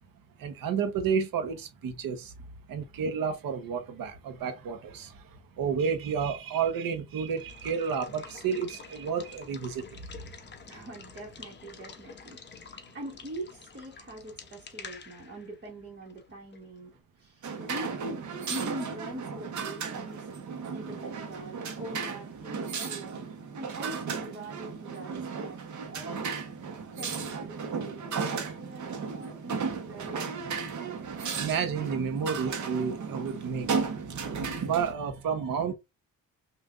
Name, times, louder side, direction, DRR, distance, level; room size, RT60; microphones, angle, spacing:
voice 1, 0.4-2.3 2.7-5.2 5.6-9.8 31.4-34.4 34.7-35.7, right 6 dB, 80° right, 1.0 m, -31 dB
Water / Water tap faucet / Liquid, 7.1-16.8, left 5 dB, 30° left, 0.8 m, -48 dB
voice 2, 10.6-23.2 23.5-25.6 25.9-26.3 27.0-30.3, right 1 dB, 30° right, 1.4 m, -43 dB
sound 1, 17.4-34.9, right 5 dB, 60° right, 1.0 m, -35 dB
5.6 x 2.6 x 2.4 m
cardioid pair, 145°, 34 cm